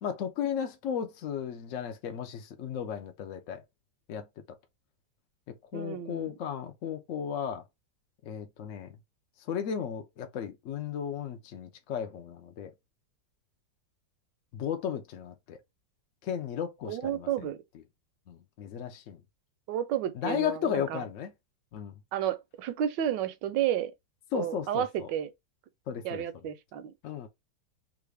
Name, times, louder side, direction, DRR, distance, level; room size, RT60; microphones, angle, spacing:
voice 1, 0.0-3.6 4.1-4.2 5.7-7.6 8.2-8.9 9.5-12.7 14.5-15.6 16.2-17.5 18.3-19.2 20.1-21.3 21.7-21.9 24.3-25.1 25.9-26.2 27.0-27.3, left 8 dB, 75° left, 0.7 m, -35 dB
voice 2, 5.7-6.3 16.9-17.6 19.7-21.0 22.1-23.9 24.3-25.3 26.0-26.9, right 10 dB, 80° right, 1.2 m, -31 dB
3.1 x 2.5 x 3.2 m
omnidirectional pair, 1.9 m